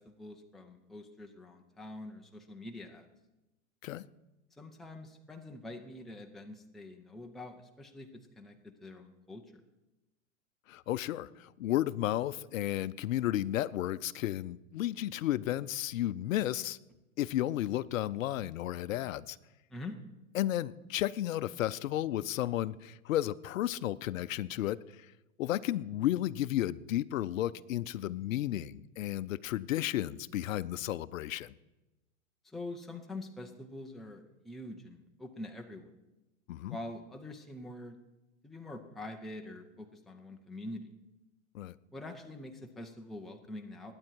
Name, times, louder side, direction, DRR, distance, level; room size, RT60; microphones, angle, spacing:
voice 1, 0.0-3.1 4.6-9.4 19.7-20.0 32.4-35.9 36.7-38.0 38.4-40.9 41.9-43.9, left 2 dB, ahead, 3 dB, 0.5 m, -45 dB
voice 2, 10.7-16.8 17.2-19.4 20.3-24.8 25.4-31.5 36.5-36.8 41.5-41.7, left 13 dB, 70° left, 15 dB, 0.6 m, -33 dB
20.5 x 8.9 x 4.6 m, 1.0 s
hypercardioid pair, 130°, 42 cm